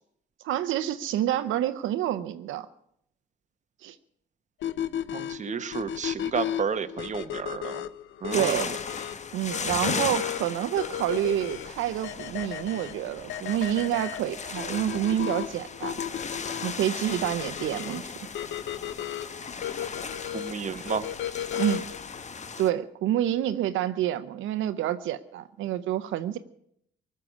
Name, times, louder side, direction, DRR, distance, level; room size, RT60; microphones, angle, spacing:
voice 1, 0.4-2.7 3.8-4.0 8.3-8.7 9.3-16.0 16.6-18.1 21.6-21.8 22.6-26.4, right 12 dB, 85° right, 11 dB, 0.7 m, -28 dB
sound 1, 4.6-22.0, left 10 dB, 75° left, 0.7 m, -35 dB
voice 2, 5.1-7.8 8.2-8.7 20.3-21.1, right 6 dB, 35° right, 10 dB, 1.0 m, -31 dB
sound 2, 8.3-22.7, left 5 dB, 35° left, 1.0 m, -37 dB
18.5 x 6.7 x 9.6 m, 0.73 s
cardioid pair, 90°, 20 cm